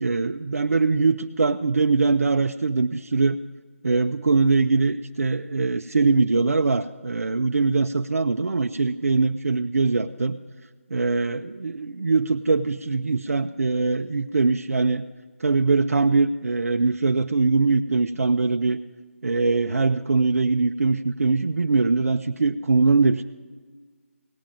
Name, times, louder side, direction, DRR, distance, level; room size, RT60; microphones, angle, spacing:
voice 1, 0.0-3.4 3.8-10.4 10.9-15.1 15.4-18.8 19.2-23.2, right 3 dB, 75° right, 6 dB, 0.5 m, -22 dB
17.0 x 8.8 x 6.1 m, 1.4 s
figure-of-eight pair, 165°, 8 cm